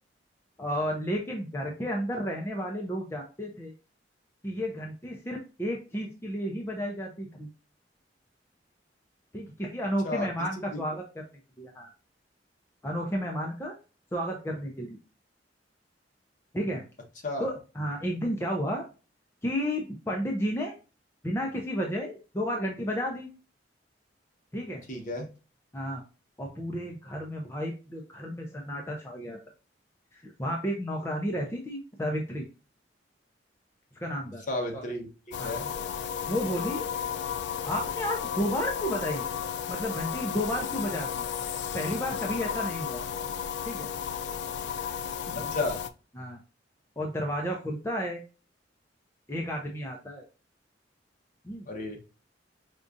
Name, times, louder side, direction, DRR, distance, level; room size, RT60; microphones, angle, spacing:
voice 1, 0.6-3.7 4.4-7.5 9.3-11.2 11.6-11.9 12.8-13.7 14.1-15.0 16.5-16.8 17.4-18.8 19.4-20.7 21.2-23.3 24.5-24.8 25.7-26.0 26.4-29.4 30.1-32.5 34.0-34.4 34.7-34.8 35.4-35.7 36.3-36.8 37.6-39.2 39.7-41.2 41.7-43.0 43.7-43.9 45.3-45.5 46.2-46.4 47.0-48.2 49.3-50.2 51.4-51.7, equal, 15° left, 0 dB, 0.5 m, -32 dB
voice 2, 24.9-25.3 34.5-35.1 35.4-35.7 45.3-45.8 51.7-52.0, left 2 dB, 45° left, 1 dB, 1.0 m, -32 dB
sound 1, 35.3-45.9, left 8 dB, 70° left, 0.3 m, -33 dB
5.1 x 2.4 x 2.5 m, 0.33 s
head